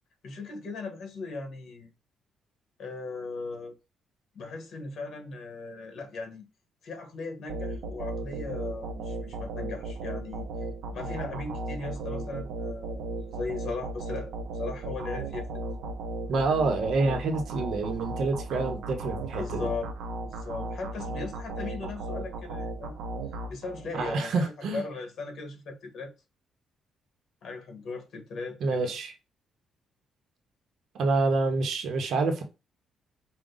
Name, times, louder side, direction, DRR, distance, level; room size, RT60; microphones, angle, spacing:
voice 1, 0.2-1.9 2.8-3.7 4.3-6.5 6.8-10.5 10.9-15.5 19.3-19.9 20.2-23.0 23.5-26.1 27.4-28.9, left 3 dB, 55° left, 1.4 m, -38 dB
sound 1, 7.5-24.1, right 2 dB, 90° right, 0.7 m, -36 dB
voice 2, 16.3-19.7 23.9-24.8 28.6-29.1 31.0-32.4, right 3 dB, 65° right, 0.9 m, -27 dB
5.0 x 2.3 x 3.8 m
cardioid pair, 135°, 0 cm